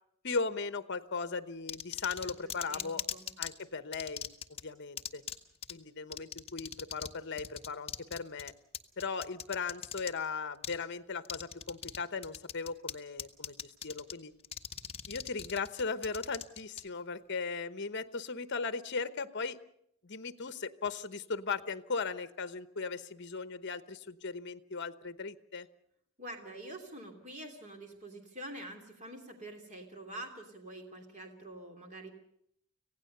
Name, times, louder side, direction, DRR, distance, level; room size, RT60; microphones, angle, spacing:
voice 1, 0.2-3.0 3.4-4.3 4.6-5.2 5.7-8.5 9.0-14.3 15.1-19.6 20.0-25.7, left 4 dB, 50° left, 12 dB, 1.0 m, -37 dB
sound 1, 1.7-3.5 3.9-4.6 5.0-5.4 5.6-5.7 6.1-7.1 7.4-10.1 10.6-10.8 11.2-12.0 12.2-12.9 13.2-14.1 14.4-16.8, left 8 dB, 25° left, 1.1 m, -39 dB
voice 2, 2.2-3.3 26.2-32.1, right 1 dB, 35° right, 3 dB, 3.0 m, -46 dB
26.0 x 17.0 x 6.7 m, 0.73 s
head